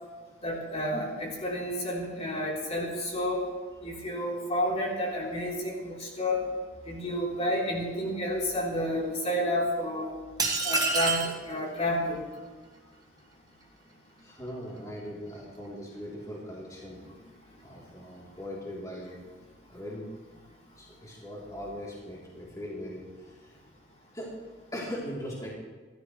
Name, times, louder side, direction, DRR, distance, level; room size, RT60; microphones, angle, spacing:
voice 1, 0.4-3.4 3.8-6.5 6.9-10.1 10.6-12.2, equal, 35° left, -3 dB, 3.7 m, -30 dB
sound 1, 10.4-11.4, right 3 dB, 20° right, 1.7 m, -27 dB
voice 2, 14.2-17.0 17.6-19.2 19.7-20.1 20.8-23.6 24.1-24.3 24.7-25.5, equal, 20° left, -5 dB, 3.4 m, -40 dB
27.0 x 13.5 x 3.2 m, 1.4 s
head